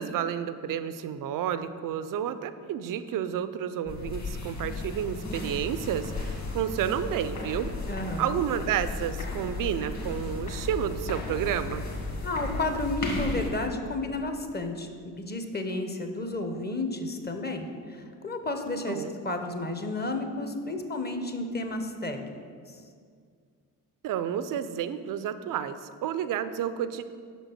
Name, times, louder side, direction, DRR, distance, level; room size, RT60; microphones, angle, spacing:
voice 1, 0.0-7.7 8.2-11.9 18.9-19.1 24.0-27.0, right 9 dB, 45° right, 12 dB, 0.5 m, -30 dB
sound 1, 3.9-13.5, left 3 dB, 35° left, 1.8 m, -35 dB
voice 2, 7.9-8.4 12.2-14.9 15.2-22.2 22.7-22.8, left 2 dB, 20° left, 6 dB, 0.9 m, -32 dB
6.1 x 5.2 x 5.9 m, 2.1 s
hypercardioid pair, 45°, 46 cm